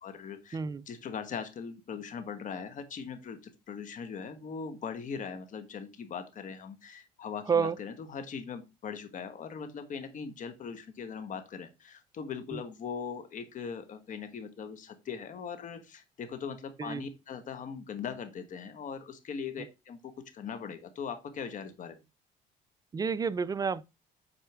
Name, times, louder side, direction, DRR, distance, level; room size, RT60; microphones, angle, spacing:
voice 1, 0.0-0.6 0.9-3.4 3.7-22.0, left 6 dB, 50° left, 1.3 m, -40 dB
voice 2, 0.5-0.8 7.5-7.8 12.5-12.6 16.8-17.0 22.9-23.8, right 6 dB, 20° right, 0.4 m, -29 dB
8.1 x 4.3 x 3.4 m
cardioid pair, 110°, 17 cm